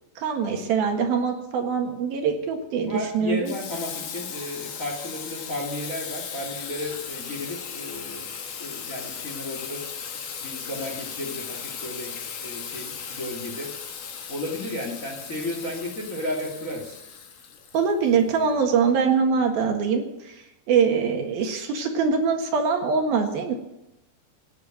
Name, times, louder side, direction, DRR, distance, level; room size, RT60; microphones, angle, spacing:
voice 1, 0.2-3.5 17.7-20.3 20.7-23.5, right 5 dB, 70° right, 3 dB, 3.5 m, -23 dB
voice 2, 2.8-9.9 10.1-12.1 12.4-13.7 14.3-17.0, left 1 dB, 25° left, 1 dB, 2.2 m, -33 dB
Water tap faucet / Sink (filling or washing), 3.4-18.2, left 7 dB, 55° left, 2.6 m, -37 dB
17.0 x 9.5 x 7.9 m, 0.92 s
omnidirectional pair, 4.6 m